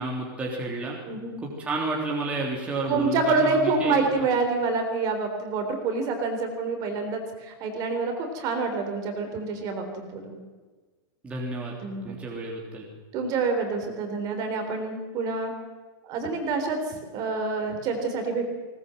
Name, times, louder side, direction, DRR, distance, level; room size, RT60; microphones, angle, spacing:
voice 1, 0.0-1.0 1.4-4.2 11.2-11.7 12.0-12.8, right 2 dB, 10° right, -3 dB, 3.4 m, -31 dB
voice 2, 1.1-1.4 2.9-10.4 11.8-12.2 13.1-15.5 16.0-18.4, right 4 dB, 30° right, 5 dB, 3.8 m, -27 dB
20.5 x 19.5 x 7.9 m, 1.3 s
supercardioid pair, 170°, 13 cm